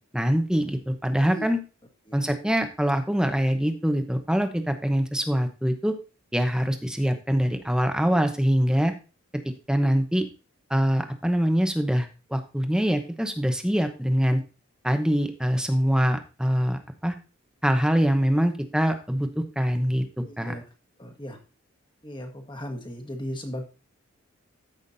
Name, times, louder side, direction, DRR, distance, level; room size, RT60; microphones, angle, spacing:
voice 1, 0.1-1.6 2.1-5.9 6.3-8.9 9.4-10.3 10.7-14.4 14.8-17.2 17.6-20.5, equal, 5° right, 6 dB, 0.8 m, -24 dB
voice 2, 20.2-20.6 21.0-21.4 22.0-23.6, equal, 20° left, 4 dB, 1.5 m, -36 dB
14.0 x 5.8 x 2.7 m, 0.33 s
head